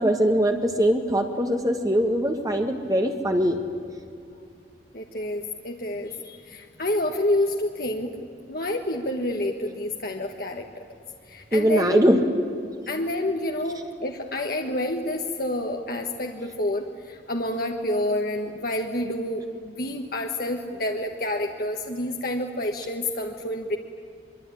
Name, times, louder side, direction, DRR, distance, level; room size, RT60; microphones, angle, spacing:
voice 1, 0.0-3.6 11.5-12.2, equal, 20° right, 4 dB, 1.5 m, -21 dB
voice 2, 4.9-8.2 8.5-10.7 11.3-12.0 12.9-23.8, left 1 dB, 55° left, 2 dB, 1.5 m, -28 dB
24.5 x 23.0 x 10.0 m, 2.4 s
head